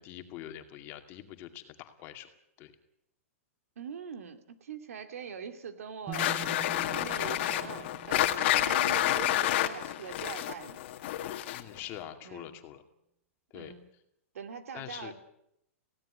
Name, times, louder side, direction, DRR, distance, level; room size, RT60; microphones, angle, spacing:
voice 1, 0.0-2.3 2.6-2.7 11.5-12.8 13.5-13.7 14.7-15.1, left 12 dB, 30° left, 6 dB, 2.3 m, -44 dB
voice 2, 3.8-6.3 6.9-10.8 12.2-12.5 13.5-13.9 14.3-15.1, right 7 dB, 85° right, 8 dB, 2.7 m, -42 dB
sound 1, 6.1-11.8, left 13 dB, 50° left, 1.9 m, -29 dB
sound 2, 6.1-10.0, right 5 dB, 15° right, 1.4 m, -46 dB
18.5 x 17.0 x 9.9 m, 0.78 s
hypercardioid pair, 160°, 8 cm